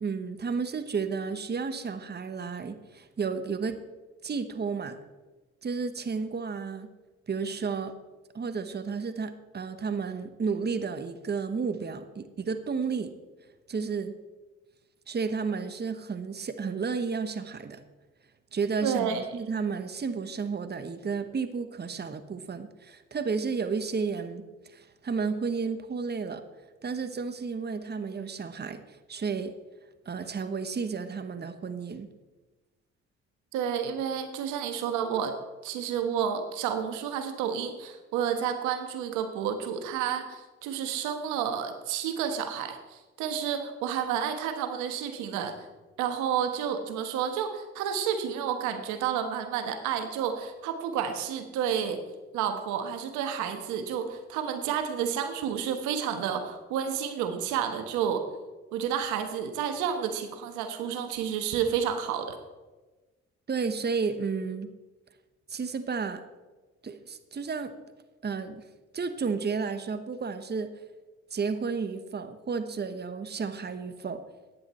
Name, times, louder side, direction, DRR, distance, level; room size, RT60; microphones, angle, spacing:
voice 1, 0.0-3.8 4.2-5.0 5.6-6.9 7.3-7.9 8.3-13.1 13.7-14.1 15.1-17.8 18.5-24.4 24.7-26.4 26.8-28.8 29.1-29.5 30.0-32.1 63.5-64.7 65.5-66.2 66.8-67.7 68.2-68.6 68.9-70.7 71.3-74.2, right 5 dB, 35° right, 10 dB, 1.2 m, -32 dB
voice 2, 18.8-19.2 33.5-35.3 35.6-45.6 46.0-52.0 52.3-58.2 58.7-62.4, right 8 dB, 90° right, 7 dB, 1.3 m, -30 dB
14.5 x 10.0 x 4.4 m, 1.2 s
supercardioid pair, 65°, 29 cm